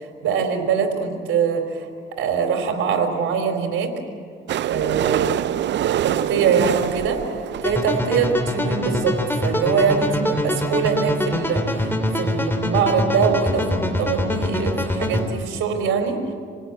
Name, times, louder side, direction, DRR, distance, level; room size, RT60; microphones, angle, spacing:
voice 1, 0.2-1.9 2.2-3.9 4.6-5.5 6.0-7.2 7.6-9.2 9.4-11.9 12.1-16.2, right 6 dB, 80° right, 5 dB, 3.9 m, -23 dB
sound 1, 4.5-8.4 9.0-9.1 9.3-9.4 9.6-9.7 10.0-10.1, right 11 dB, 65° right, 0.6 m, -25 dB
sound 2, 7.6-15.3, left 1 dB, 10° left, 3.1 m, -24 dB
27.5 x 18.0 x 8.9 m, 2.1 s
cardioid pair, 90°, 20 cm